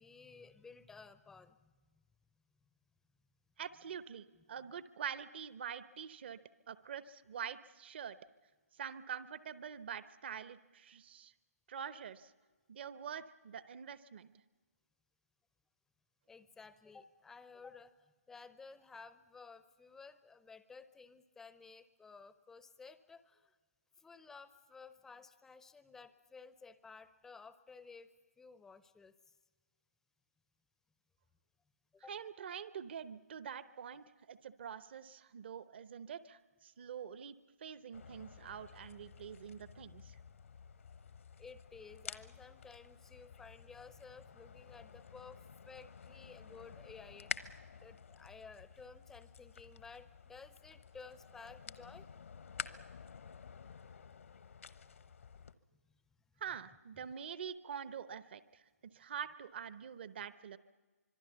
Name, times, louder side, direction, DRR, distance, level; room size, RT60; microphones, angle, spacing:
voice 1, 0.0-1.7 16.3-23.6 24.0-28.1 28.4-29.1 31.9-32.1 41.4-47.6 47.8-52.1 55.7-55.8, left 4 dB, 5° left, 13 dB, 0.7 m, -55 dB
voice 2, 3.6-8.2 8.8-11.3 11.7-12.3 12.7-14.3 32.1-37.3 37.6-40.2 56.4-60.6, right 8 dB, 45° right, 15 dB, 0.9 m, -45 dB
sound 1, 37.9-55.5, left 6 dB, 60° left, 1.0 m, -50 dB
25.5 x 22.5 x 6.9 m, 1.4 s
figure-of-eight pair, 140°, 8 cm